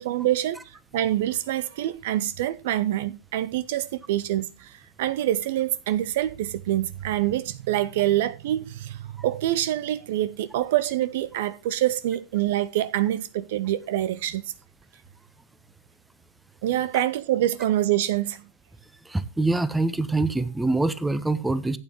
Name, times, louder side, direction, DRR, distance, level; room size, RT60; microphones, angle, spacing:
voice 1, 0.0-14.4 16.6-18.4, right 13 dB, 55° right, 0.5 m, -26 dB
voice 2, 19.0-21.8, right 2 dB, 5° right, 0.9 m, -24 dB
15.5 x 9.0 x 3.0 m
figure-of-eight pair, 90°, 0 cm